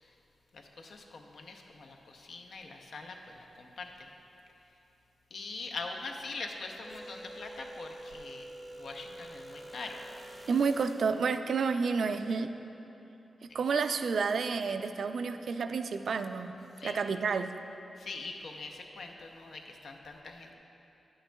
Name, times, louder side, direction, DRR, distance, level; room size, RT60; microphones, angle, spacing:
voice 1, 0.5-4.1 5.3-8.5 8.7-10.0 13.5-13.6 16.8-17.0 18.0-20.6, left 3 dB, 70° left, 3 dB, 0.6 m, -43 dB
sound 1, 6.8-11.3, right 1 dB, 5° right, 0.6 m, -47 dB
voice 2, 10.5-12.5 13.5-16.5 16.8-17.5, right 5 dB, 70° right, 9 dB, 0.3 m, -30 dB
9.8 x 8.7 x 2.2 m, 3.0 s
wide cardioid pair, 110°, 0 cm